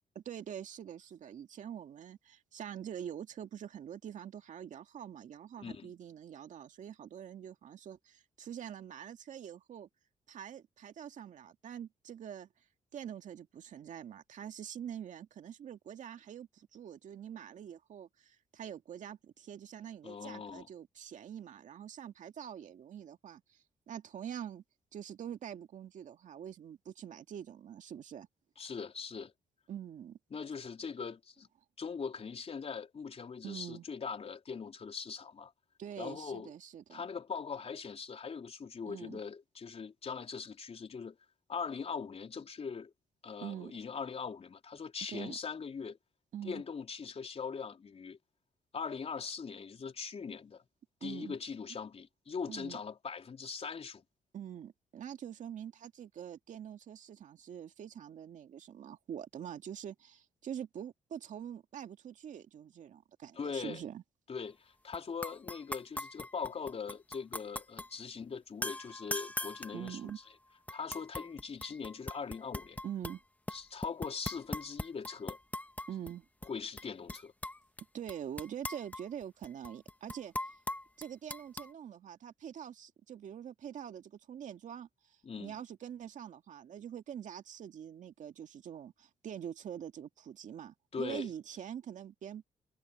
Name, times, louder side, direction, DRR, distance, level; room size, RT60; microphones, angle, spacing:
voice 1, 0.2-9.9 10.3-12.5 12.9-24.6 24.9-28.3 29.7-30.2 33.4-33.9 35.8-37.1 38.9-39.2 43.4-43.7 45.1-45.4 46.3-46.6 51.0-51.4 52.5-52.8 54.3-64.0 69.7-70.2 72.8-73.2 75.9-76.3 77.9-80.6 81.0-92.4, right 9 dB, 65° right, 2.1 m, -45 dB
voice 2, 5.6-5.9 20.0-20.7 28.6-29.3 30.3-31.5 31.8-35.5 36.0-36.5 36.9-41.2 41.5-42.9 43.2-46.0 46.4-48.2 48.7-50.6 51.0-54.0 63.4-63.8 64.3-70.0 70.7-72.8 73.5-75.4 76.5-77.3 85.2-85.5 90.9-91.3, left 5 dB, 50° left, 4.0 m, -41 dB
sound 1, 64.9-65.0 65.2-67.9 68.6-70.3 70.7-73.2 73.5-76.1 76.4-76.5 76.8-77.8 78.1-81.7, left 1 dB, 10° left, 1.3 m, -41 dB
supercardioid pair, 65°, 14 cm